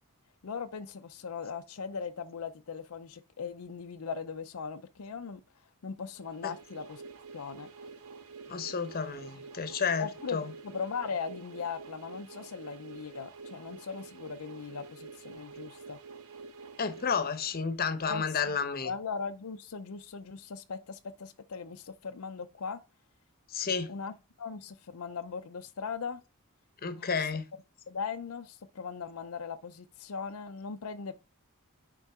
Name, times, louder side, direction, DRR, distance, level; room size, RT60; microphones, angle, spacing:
voice 1, 0.4-5.4 5.8-7.0 7.3-7.7 10.0-16.0 18.1-18.4 18.8-22.8 23.9-26.2 27.0-27.3 27.9-31.1, left 5 dB, 80° left, 0.6 m, -39 dB
sound 1, 6.1-18.0, right 4 dB, 75° right, 1.0 m, -48 dB
voice 2, 8.5-10.5 16.8-18.9 23.5-23.9 26.8-27.4, left 5 dB, 45° left, 0.9 m, -31 dB
9.9 x 3.9 x 3.5 m
head